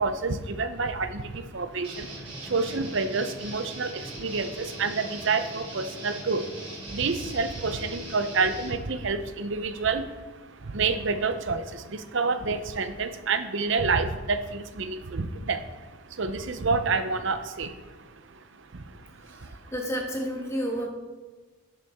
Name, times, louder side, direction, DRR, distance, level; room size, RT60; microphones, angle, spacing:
voice 1, 0.0-19.6, right 4 dB, 55° right, 10 dB, 0.6 m, -29 dB
sound 1, 1.8-8.7, right 1 dB, 25° right, 2.6 m, -40 dB
voice 2, 19.1-20.9, equal, 10° left, 1 dB, 1.0 m, -31 dB
11.0 x 6.8 x 3.6 m, 1.3 s
head